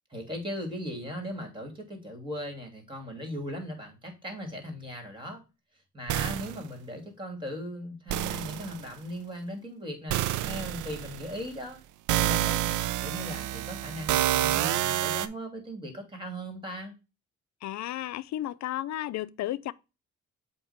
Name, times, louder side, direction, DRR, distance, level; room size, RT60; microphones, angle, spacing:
voice 1, 0.1-5.4 5.9-11.8 12.2-16.9, equal, 15° right, 2.8 m, -38 dB
sound 1, 6.1-6.7 8.1-8.9 10.1-11.4 12.1-15.3, right 13 dB, 85° right, 0.5 m, -28 dB
voice 2, 17.6-19.7, left 13 dB, 65° left, 0.5 m, -33 dB
7.8 x 2.9 x 4.3 m
cardioid pair, 90°, 30 cm